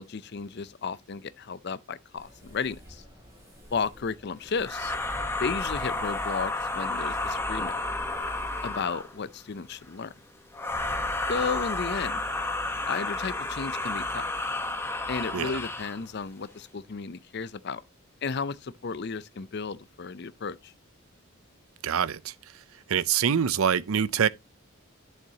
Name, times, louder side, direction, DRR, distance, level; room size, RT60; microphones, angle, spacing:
voice 1, 0.0-3.0 3.7-5.0 5.4-7.8 8.6-10.1 11.3-12.2 12.8-14.3 15.1-17.8 18.2-20.7, left 5 dB, 50° left, 0.5 m, -33 dB
sound 1, 2.2-9.0, equal, 15° right, 6.6 m, -51 dB
sound 2, 4.6-9.2 10.5-16.0, left 2 dB, 10° left, 1.0 m, -31 dB
voice 2, 21.8-22.3 22.9-24.3, right 8 dB, 80° right, 0.5 m, -25 dB
10.5 x 6.6 x 2.8 m
head